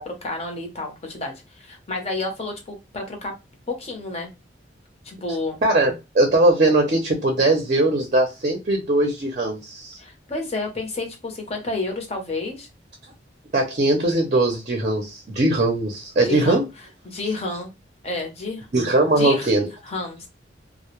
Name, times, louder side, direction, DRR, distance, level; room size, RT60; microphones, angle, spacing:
voice 1, 0.1-3.3 3.7-4.3 5.0-5.6 10.0-12.7 16.2-16.6 17.0-17.7 18.0-18.7 19.2-19.5 19.8-20.3, left 2 dB, 35° left, 0.7 m, -30 dB
voice 2, 5.6-10.0 13.5-16.6 18.7-19.7, right 2 dB, 40° right, 0.5 m, -20 dB
2.1 x 2.0 x 2.9 m
head